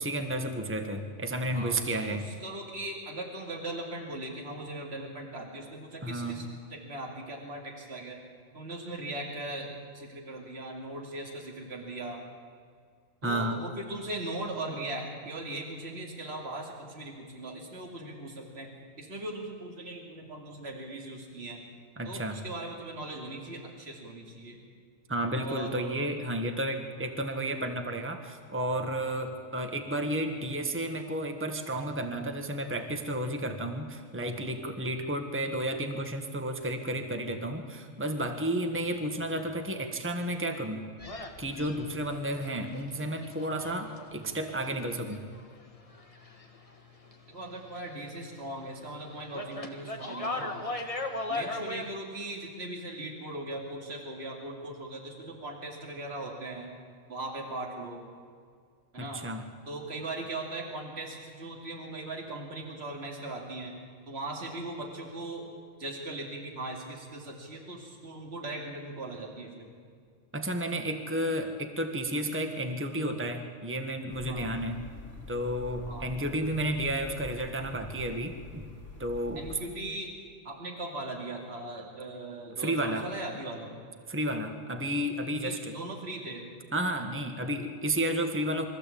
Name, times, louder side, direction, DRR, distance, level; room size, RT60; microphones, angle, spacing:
voice 1, 0.0-2.3 6.0-6.4 13.2-13.6 22.0-22.4 25.1-40.8 41.4-45.2 59.0-59.5 70.3-74.8 75.3-78.6 79.0-79.6 82.6-83.1 84.1-85.7 86.7-88.7, right 1 dB, 10° right, 5 dB, 1.5 m, -32 dB
voice 2, 1.5-6.4 6.7-8.2 8.5-9.7 9.9-12.2 13.2-18.7 19.0-21.6 22.0-24.6 25.4-26.2 29.0-29.1 47.3-50.6 51.3-56.7 57.1-58.0 58.9-59.2 59.7-63.7 64.1-65.4 65.8-69.7 74.3-74.5 75.9-76.1 79.4-80.1 80.4-83.7 85.4-86.5, right 2 dB, 50° right, 0 dB, 2.9 m, -39 dB
sound 1, 41.0-46.8 47.0-48.3 48.6-51.9, left 2 dB, 25° left, 1.7 m, -38 dB
sound 2, 74.1-79.7, left 2 dB, 65° left, 2.6 m, -44 dB
24.0 x 14.5 x 8.6 m, 2.1 s
omnidirectional pair, 1.4 m